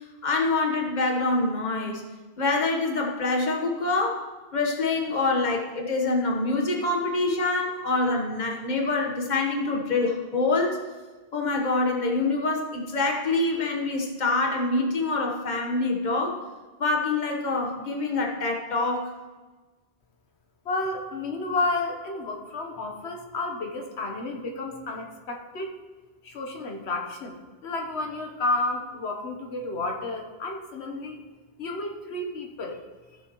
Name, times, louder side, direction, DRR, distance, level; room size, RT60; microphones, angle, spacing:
voice 1, 0.2-2.0 2.4-4.2 4.5-10.8 11.3-16.4 16.8-19.1, left 3 dB, 45° left, 1 dB, 1.3 m, -25 dB
voice 2, 20.6-25.7 26.2-27.4 27.6-31.2 31.6-32.8, left 2 dB, 90° left, 2 dB, 1.3 m, -31 dB
15.0 x 6.7 x 3.0 m, 1.3 s
omnidirectional pair, 1.1 m